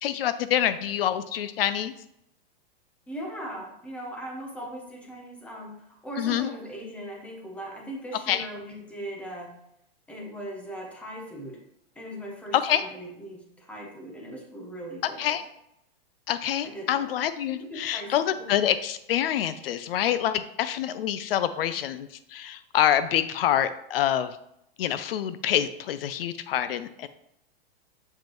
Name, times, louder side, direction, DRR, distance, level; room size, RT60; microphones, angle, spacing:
voice 1, 0.0-1.9 6.2-6.5 8.3-8.5 12.5-12.8 15.2-15.4 16.3-24.4 24.8-27.1, left 11 dB, 70° left, 13 dB, 0.5 m, -26 dB
voice 2, 3.1-9.5 10.1-11.6 11.9-15.4 16.7-17.0 17.7-18.4, right 1 dB, 5° left, 0 dB, 0.8 m, -39 dB
7.4 x 5.1 x 3.0 m, 0.80 s
supercardioid pair, 165°, 30 cm